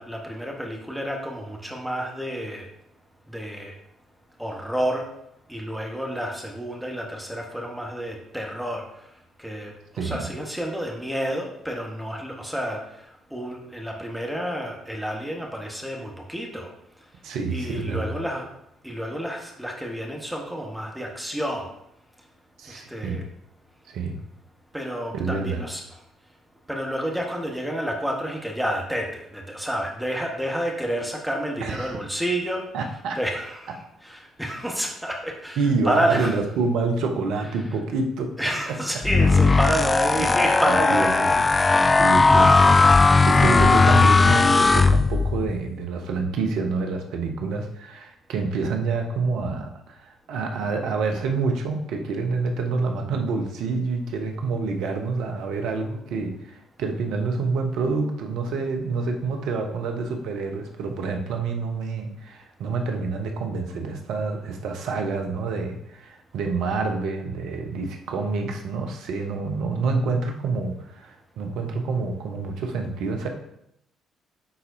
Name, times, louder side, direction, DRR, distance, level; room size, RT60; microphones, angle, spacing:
voice 1, 0.0-2.7 3.3-3.7 4.4-5.0 5.5-8.8 9.4-12.8 13.3-16.7 17.5-18.4 18.8-21.7 22.7-23.2 24.7-25.8 26.7-36.4 37.4-37.8 38.4-41.1 41.5-41.8, equal, 5° right, 0 dB, 1.4 m, -29 dB
voice 2, 10.0-10.3 17.2-18.2 22.6-23.2 23.9-24.2 25.1-25.6 31.6-32.0 32.7-33.2 35.6-38.3 38.7-39.0 40.2-40.3 40.7-41.4 42.0-73.3, right 4 dB, 65° right, 3 dB, 0.9 m, -27 dB
sound 1, 39.0-45.5, left 3 dB, 30° left, 0.3 m, -17 dB
9.8 x 4.1 x 2.7 m, 0.79 s
hypercardioid pair, 45°, 0 cm